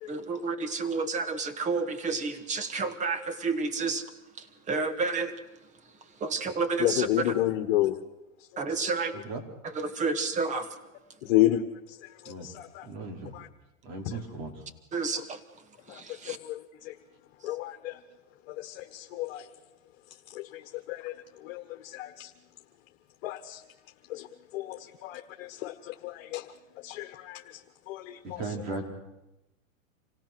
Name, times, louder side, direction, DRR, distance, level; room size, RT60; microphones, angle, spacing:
voice 1, 0.1-4.0 4.7-5.3 6.2-7.1 8.6-9.1 9.8-10.7 14.9-15.2 16.2-16.4, right 4 dB, 20° right, 10 dB, 1.6 m, -30 dB
voice 2, 6.8-8.0 8.5-8.6 11.2-11.6 12.4-12.9 13.3-13.5 15.9-16.0 16.3-16.6 16.8-16.9 17.4-18.0 18.5-19.5 20.3-20.6 20.9-21.1 21.4-22.3 23.2-23.6 24.1-24.3 24.5-26.4 26.8-27.4 27.9-28.4, left 14 dB, 50° left, 5 dB, 1.5 m, -30 dB
voice 3, 12.8-13.3 13.8-14.5 28.2-28.8, right 3 dB, 60° right, 3 dB, 4.8 m, -37 dB
27.0 x 16.5 x 6.2 m, 0.95 s
hypercardioid pair, 135°, 40 cm